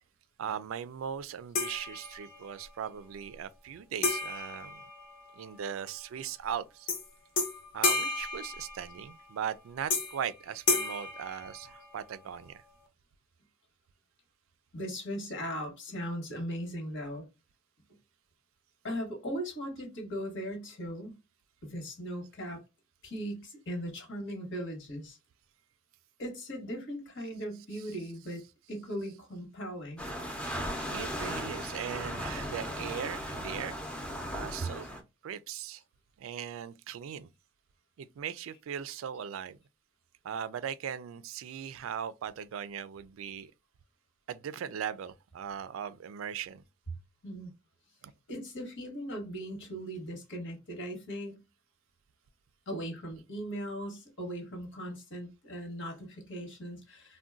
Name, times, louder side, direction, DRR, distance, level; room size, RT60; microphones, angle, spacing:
voice 1, 0.4-4.8 5.3-6.9 7.7-12.6 27.5-28.0 28.3-28.5 29.1-29.2 30.5-33.8 34.3-34.9 35.2-35.8 36.2-37.3 38.0-39.6 40.2-43.5 44.3-46.6 48.0-48.1, right 8 dB, 85° right, 0.3 m, -39 dB
sound 1, 1.5-2.5 4.0-5.6 6.9-7.1 7.4-9.2 9.9-10.3 10.7-12.1, left 3 dB, 45° left, 0.8 m, -32 dB
voice 2, 14.7-17.3 18.8-21.2 21.6-22.6 23.0-25.2 26.2-28.4 28.7-30.1 47.2-47.5 48.3-51.4 52.7-57.2, equal, 65° left, 1.2 m, -38 dB
sound 2, 30.0-35.0, equal, 5° left, 0.5 m, -37 dB
3.7 x 2.2 x 2.4 m
head